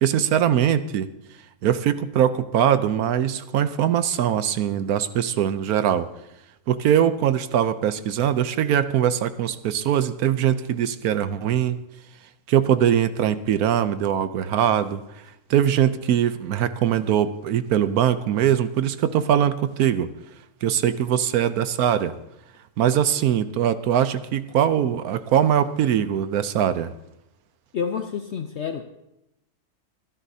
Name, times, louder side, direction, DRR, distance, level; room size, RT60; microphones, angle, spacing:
voice 1, 0.0-1.1 1.6-6.1 6.7-11.8 12.5-15.0 15.5-20.1 20.6-22.1 22.8-26.9, right 10 dB, 80° right, 12 dB, 1.1 m, -21 dB
voice 2, 27.7-28.8, left 6 dB, 60° left, 6 dB, 0.9 m, -28 dB
25.5 x 11.5 x 2.8 m, 0.87 s
omnidirectional pair, 1.6 m